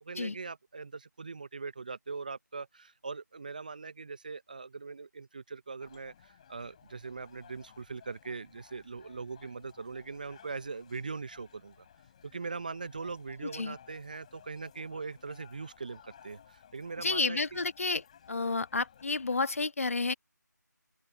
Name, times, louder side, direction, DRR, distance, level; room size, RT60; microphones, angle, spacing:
voice 1, 0.0-11.7 12.2-17.6, right 4 dB, 25° right, 0.6 m, -41 dB
sound 1, 5.8-19.4, left 8 dB, 20° left, 6.3 m, -58 dB
voice 2, 17.0-18.0 18.3-20.1, left 3 dB, 45° left, 1.2 m, -30 dB
open air
figure-of-eight pair, 165°, 10 cm